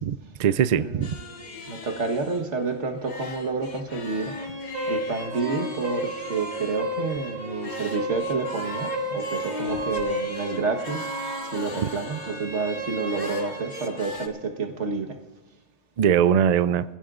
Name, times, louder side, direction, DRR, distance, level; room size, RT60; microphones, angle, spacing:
voice 1, 0.0-1.1 11.8-11.9 16.0-16.8, right 8 dB, 55° right, 14 dB, 0.4 m, -21 dB
voice 2, 0.7-1.1 1.7-4.3 4.9-11.1 11.5-15.2, right 4 dB, 80° right, 5 dB, 1.7 m, -29 dB
sound 1, 1.0-14.3, left 3 dB, 40° left, 1.1 m, -41 dB
sound 2, 4.1-14.1, right 1 dB, 35° right, 2.3 m, -32 dB
24.5 x 15.5 x 2.5 m, 1.2 s
omnidirectional pair, 1.2 m